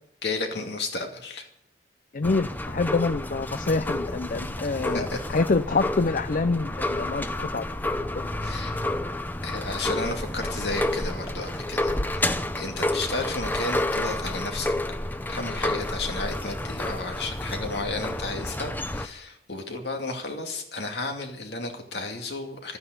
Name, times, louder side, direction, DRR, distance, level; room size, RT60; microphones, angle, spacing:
voice 1, 0.2-1.5 4.9-5.2 8.4-8.8 9.4-15.0 15.3-22.8, left 3 dB, 65° left, 4 dB, 2.5 m, -33 dB
voice 2, 2.1-5.1 5.3-7.6 8.1-8.3, left 3 dB, 50° left, 12 dB, 0.5 m, -26 dB
sound 1, 2.2-19.1, left 1 dB, 10° left, 0.7 m, -30 dB
13.0 x 9.5 x 9.3 m, 0.75 s
head